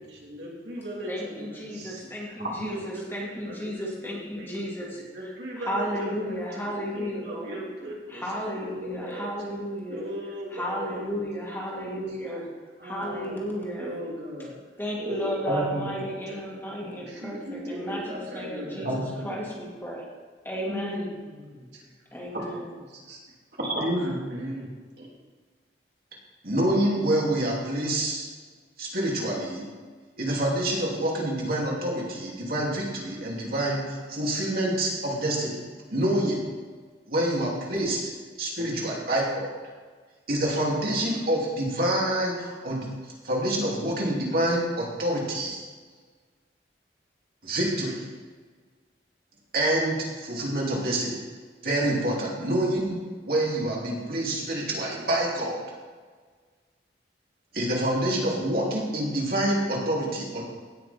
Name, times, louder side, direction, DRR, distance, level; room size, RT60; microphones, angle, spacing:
voice 1, 0.0-9.3 9.9-11.3 11.6-11.7 11.9-12.4 12.8-13.4 13.8-14.5 15.0-15.7 16.0-19.4 20.7-22.2 22.8-23.2 24.0-25.1 38.6-38.9 60.3-60.4, equal, 75° right, -4 dB, 3.2 m, -38 dB
voice 2, 1.1-5.0 5.6-7.6 8.1-10.0 10.5-12.4 12.8-13.9 14.8-20.0 20.4-21.0 22.1-22.7, equal, 15° left, -4 dB, 2.1 m, -34 dB
voice 3, 15.5-15.9 18.8-19.0 23.6-24.0 26.4-28.3 28.8-29.7 30.2-35.6 35.9-36.4 37.1-38.1 38.4-39.5 40.3-45.6 47.4-48.0 49.5-51.2 51.6-55.6 57.5-60.4, right 1 dB, 55° right, -3 dB, 2.7 m, -27 dB
16.5 x 6.2 x 4.4 m, 1.5 s
head